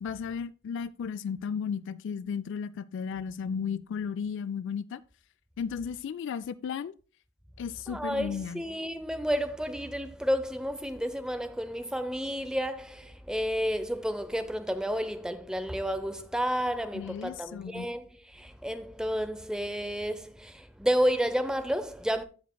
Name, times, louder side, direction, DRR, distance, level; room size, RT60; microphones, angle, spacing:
voice 1, 0.0-5.0 5.6-6.9 7.6-8.6 16.9-17.9, left 6 dB, 55° left, 0.3 m, -34 dB
voice 2, 7.9-18.0 18.3-22.2, equal, 5° right, 0.6 m, -31 dB
15.0 x 5.2 x 2.3 m
head